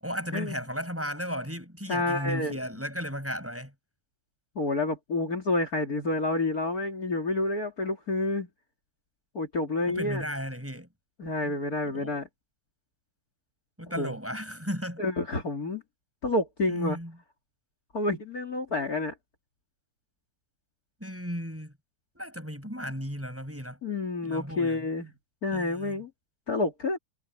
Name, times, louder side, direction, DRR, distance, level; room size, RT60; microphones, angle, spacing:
voice 1, 0.0-3.7 9.9-10.9 11.4-11.5 11.9-12.2 13.8-15.0 16.7-17.2 18.7-19.0 21.0-21.7 22.1-23.8 24.2-24.9 25.5-26.0, equal, 5° right, 7.3 m, -35 dB
voice 2, 1.9-2.6 4.5-8.5 9.3-10.2 11.2-12.3 14.0-14.1 15.0-15.8 16.2-17.0 17.9-19.1 23.8-25.1 25.4-26.1 26.5-27.0, left 2 dB, 45° left, 3.3 m, -29 dB
omnidirectional pair, 2.3 m